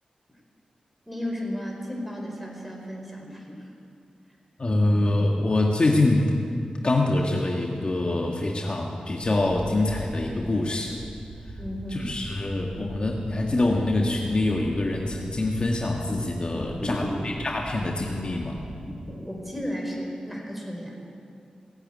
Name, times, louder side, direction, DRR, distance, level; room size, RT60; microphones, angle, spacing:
voice 1, 1.1-3.6 11.6-12.1 19.3-20.9, equal, 5° right, 0 dB, 4.7 m, -34 dB
voice 2, 4.6-6.3 6.8-11.0 11.9-18.6, left 2 dB, 45° left, 0 dB, 1.7 m, -25 dB
sound 1, 10.8-19.2, right 1 dB, 75° right, 4.4 m, -40 dB
18.5 x 8.3 x 9.4 m, 2.5 s
cardioid pair, 50°, 2 cm